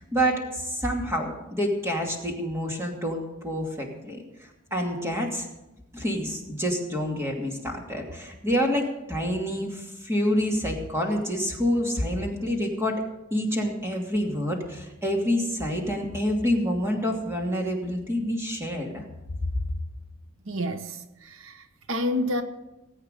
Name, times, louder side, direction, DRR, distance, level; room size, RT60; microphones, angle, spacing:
voice 1, 0.0-4.2 4.7-5.5 5.9-13.0 13.3-19.0, equal, 15° right, 2.6 m, -27 dB
voice 2, 20.4-22.4, left 1 dB, 90° right, 1.1 m, -29 dB
19.0 x 8.8 x 6.8 m
head